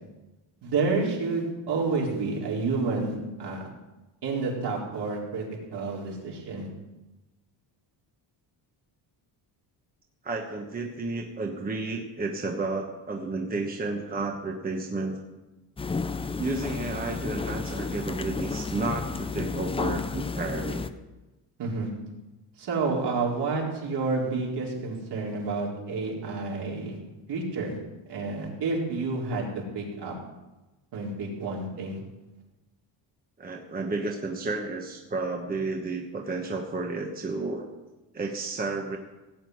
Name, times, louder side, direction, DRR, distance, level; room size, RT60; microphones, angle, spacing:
voice 1, 0.6-3.6 4.2-5.5 5.7-6.7 21.6-21.9 22.6-27.0 27.3-27.7 28.1-30.1 30.9-32.0, right 3 dB, 60° right, -2 dB, 4.1 m, -29 dB
voice 2, 10.2-15.2 16.4-20.8 33.4-37.7 38.1-39.0, right 3 dB, 20° right, 1 dB, 1.2 m, -32 dB
sound 1, 15.8-20.9, left 4 dB, 15° left, 0.4 m, -32 dB
17.5 x 6.1 x 9.3 m, 1.1 s
cardioid pair, 165°, 46 cm